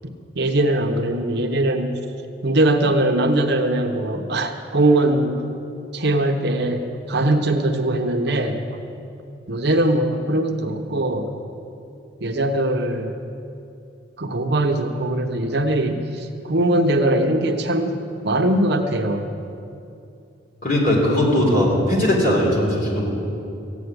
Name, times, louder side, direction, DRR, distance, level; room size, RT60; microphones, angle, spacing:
voice 1, 0.3-1.9 2.4-5.4 5.9-8.8 9.5-11.3 12.2-13.1 14.2-17.9 18.2-19.3, right 1 dB, 60° right, 5 dB, 1.0 m, -21 dB
voice 2, 20.6-23.1, left 1 dB, 45° left, -2 dB, 3.7 m, -19 dB
15.0 x 8.3 x 9.6 m, 2.7 s
head